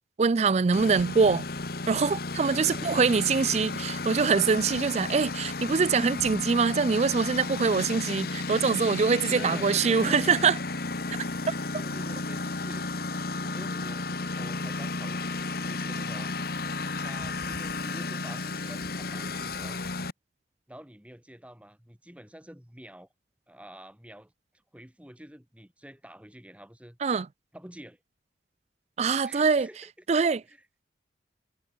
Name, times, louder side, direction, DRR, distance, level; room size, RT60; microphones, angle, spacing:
voice 1, 0.2-1.4 1.9-10.6 11.5-11.6 27.0-27.3 29.0-29.7 30.1-30.4, right 5 dB, 35° right, 0.4 m, -24 dB
Engine, 0.7-20.1, left 3 dB, 50° left, 1.6 m, -33 dB
voice 2, 2.6-3.2 9.3-10.5 11.8-16.3 17.0-19.8 20.7-23.1 23.5-24.3 24.7-27.0 27.5-28.0 29.2-30.1 30.5-30.7, equal, 5° right, 2.0 m, -47 dB
head